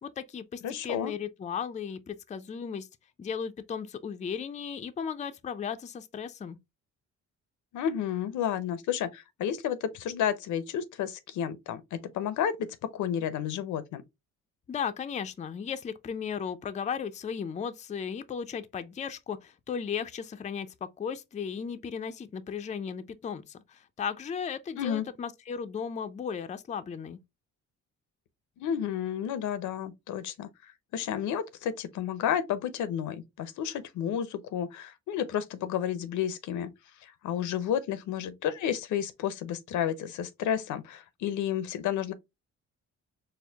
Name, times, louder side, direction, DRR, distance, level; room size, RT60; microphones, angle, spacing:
voice 1, 0.0-2.9 3.2-6.6 14.7-27.2, left 7 dB, 25° left, 0.4 m, -36 dB
voice 2, 0.6-1.1 7.7-14.0 24.7-25.1 28.6-30.5 30.9-36.7 37.0-42.1, left 9 dB, 75° left, 0.6 m, -31 dB
4.5 x 2.1 x 3.4 m
cardioid pair, 90°, 30 cm